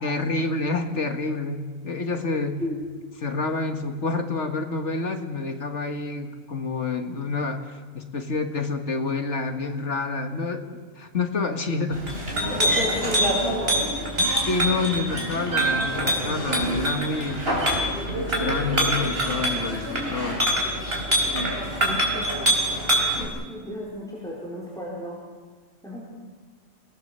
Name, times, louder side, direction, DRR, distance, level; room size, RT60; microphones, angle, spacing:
voice 1, 0.0-2.6 3.2-12.0 14.2-17.4 18.2-20.4, left 3 dB, 70° left, 6 dB, 2.0 m, -28 dB
Chink clink, 11.9-23.2, right 1 dB, 55° right, 4.7 m, -25 dB
voice 2, 12.4-13.8 21.5-22.3 23.2-25.2 25.8-26.0, equal, 5° left, -5 dB, 4.4 m, -32 dB
28.0 x 19.0 x 6.8 m, 1.5 s
omnidirectional pair, 1.2 m